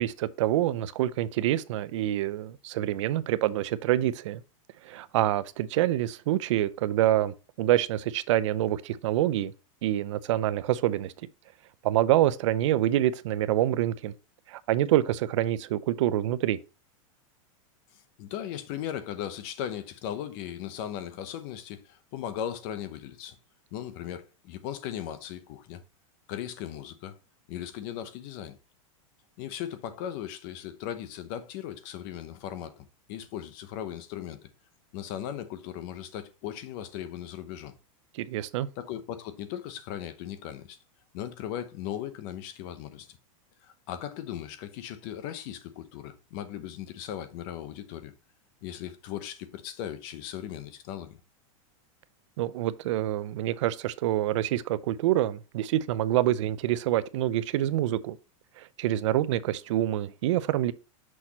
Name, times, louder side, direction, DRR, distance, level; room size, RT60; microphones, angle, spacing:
voice 1, 0.0-4.4 4.8-9.5 9.8-11.1 11.8-14.1 14.5-16.6 38.1-38.7 52.4-58.2 58.6-60.7, right 13 dB, 60° right, 0.5 m, -26 dB
voice 2, 17.9-23.4 23.7-25.8 26.3-27.1 27.5-28.6 29.4-34.4 34.9-37.7 38.8-40.8 41.1-43.2 43.6-48.1 48.6-51.2, left 10 dB, 40° left, 0.9 m, -38 dB
6.2 x 5.8 x 2.9 m
supercardioid pair, 165°, 18 cm